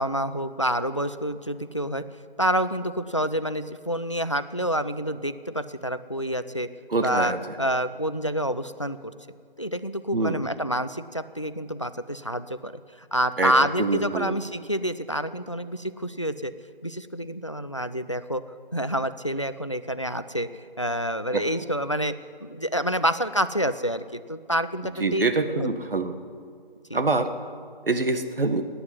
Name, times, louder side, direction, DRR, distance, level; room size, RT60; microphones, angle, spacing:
voice 1, 0.0-2.0 2.4-6.7 7.0-9.1 9.6-12.7 13.0-16.5 16.8-18.4 18.7-22.2 22.4-25.2 25.5-25.7 26.9-27.0, equal, 35° left, 12 dB, 0.4 m, -28 dB
voice 2, 6.9-7.4 10.1-10.4 13.4-13.5 13.8-14.3 21.3-21.4 25.0-26.1 26.9-27.3 27.9-28.6, right 3 dB, 70° right, 8 dB, 1.5 m, -25 dB
15.5 x 9.6 x 9.6 m, 2.1 s
figure-of-eight pair, 165°, 29 cm